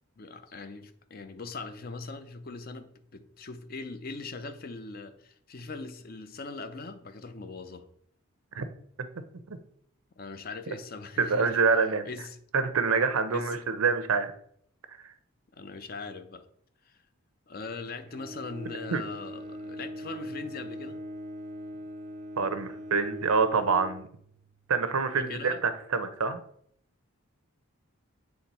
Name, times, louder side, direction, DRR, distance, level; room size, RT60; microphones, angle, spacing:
voice 1, 0.2-7.9 10.2-11.6 12.0-12.4 13.3-13.6 15.5-16.5 16.9-17.0 17.5-21.0 25.1-25.6, left 3 dB, 45° left, 10 dB, 0.5 m, -40 dB
voice 2, 11.2-12.1 12.5-14.3 15.0-15.1 18.9-19.0 22.4-24.1 24.7-26.4, right 5 dB, 90° right, 10 dB, 0.7 m, -26 dB
Bowed string instrument, 18.0-24.7, equal, 35° right, 0.4 m, -41 dB
7.8 x 3.3 x 4.2 m, 0.65 s
head